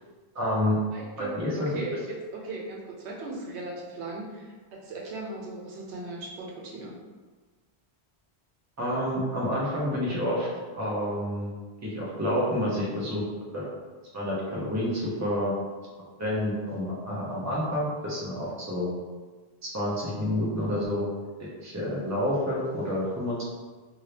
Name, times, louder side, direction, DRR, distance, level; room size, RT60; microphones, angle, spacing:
voice 1, 0.3-0.8 1.2-1.7 8.8-10.5 10.7-11.5 11.8-13.2 13.5-13.7 14.1-15.6 16.2-18.9 19.6-21.1 21.4-23.4, left 1 dB, 20° right, -6 dB, 0.7 m, -29 dB
voice 2, 0.9-7.0, right 2 dB, 85° right, -2 dB, 1.0 m, -38 dB
2.7 x 2.7 x 3.2 m, 1.4 s
omnidirectional pair, 1.1 m